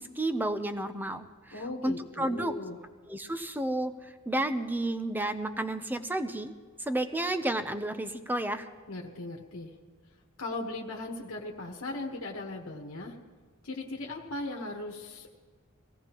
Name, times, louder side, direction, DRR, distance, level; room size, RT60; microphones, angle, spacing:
voice 1, 0.0-2.5 3.1-6.5 6.8-8.7, right 1 dB, 10° right, 9 dB, 0.6 m, -32 dB
voice 2, 1.5-2.8 8.9-9.7 10.4-13.2 13.6-15.3, left 2 dB, 85° left, 0 dB, 1.2 m, -38 dB
22.0 x 16.5 x 3.0 m, 1.5 s
head